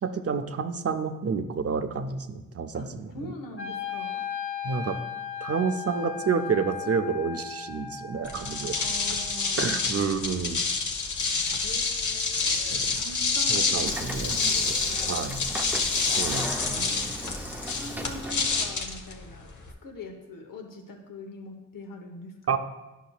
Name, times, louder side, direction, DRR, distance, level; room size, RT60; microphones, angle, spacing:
voice 1, 0.0-3.1 4.6-5.0 5.4-8.8 9.6-10.6 12.7-13.0 13.5-14.8 15.1-15.4 16.2-17.1 22.5-22.6, right 5 dB, 45° right, 8 dB, 0.6 m, -29 dB
voice 2, 3.1-4.3 8.7-10.8 11.6-15.2 17.7-19.5 19.8-22.6, left 2 dB, 80° left, 3 dB, 1.0 m, -43 dB
Wind instrument woodwind instrument, 3.6-9.6, left 8 dB, 40° left, 1.1 m, -37 dB
sound 1, 8.2-19.7, left 4 dB, 65° left, 0.9 m, -28 dB
Train / Sliding door, 13.8-18.8, right 1 dB, 5° right, 0.5 m, -38 dB
10.0 x 5.5 x 2.3 m, 1.1 s
cardioid pair, 55°, 32 cm